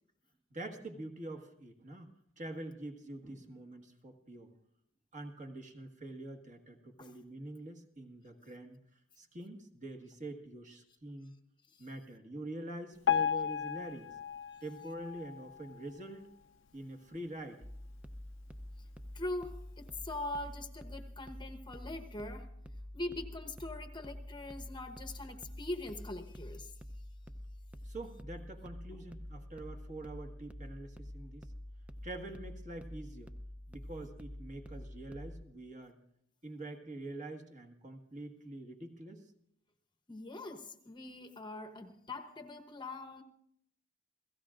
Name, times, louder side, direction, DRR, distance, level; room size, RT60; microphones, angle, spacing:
voice 1, 0.5-2.1 2.4-4.5 5.1-8.8 9.2-11.3 11.8-14.1 14.6-16.3 16.7-17.6 27.8-31.5 32.0-33.3 33.7-36.0 36.4-39.2, right 1 dB, 40° right, 1.6 m, -45 dB
Piano, 13.0-16.2 16.7-16.8 17.1-17.2 17.9-18.0 18.6-18.7, left 8 dB, 65° left, 0.5 m, -35 dB
sound 1, 17.6-35.5, left 1 dB, 5° right, 0.6 m, -47 dB
voice 2, 19.1-22.5 22.9-26.7 40.1-43.2, left 2 dB, 25° left, 0.9 m, -42 dB
30.0 x 16.5 x 2.5 m
head